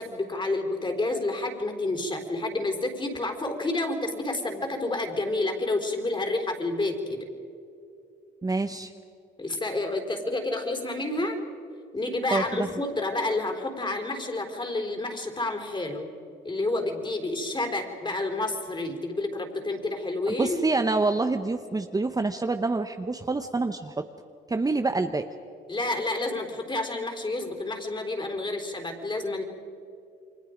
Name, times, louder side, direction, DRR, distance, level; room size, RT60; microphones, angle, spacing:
voice 1, 0.0-7.2 9.4-11.4 11.9-16.1 16.4-20.6 25.7-29.4, left 2 dB, 25° left, 3 dB, 3.9 m, -29 dB
voice 2, 8.4-8.9 12.3-12.7 20.3-24.0 24.5-25.3, right 3 dB, 20° right, 7 dB, 0.9 m, -27 dB
29.5 x 23.5 x 5.1 m, 2.7 s
cardioid pair, 90°, 20 cm